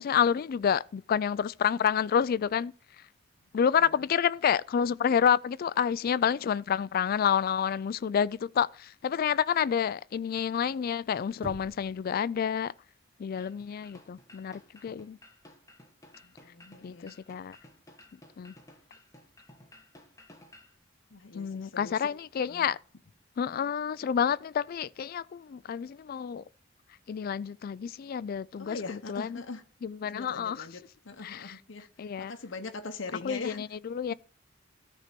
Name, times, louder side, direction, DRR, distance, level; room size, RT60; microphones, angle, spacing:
voice 1, 0.0-3.1 3.5-12.7 13.2-15.2 16.8-17.6 18.1-18.5 21.3-22.8 23.4-26.4 27.1-29.4 29.8-30.7 31.2-31.6 32.0-32.3 33.2-34.1, left 8 dB, 50° left, 0.3 m, -29 dB
Knock, 11.4-12.1, right 1 dB, 30° right, 1.5 m, -43 dB
sound 1, 13.4-20.7, left 1 dB, 15° left, 1.3 m, -55 dB
voice 2, 16.2-17.2 21.1-21.9 22.5-22.7 28.6-29.6 30.1-30.8 31.0-31.9 32.2-33.6, left 3 dB, 75° left, 0.9 m, -41 dB
13.0 x 4.4 x 5.2 m
head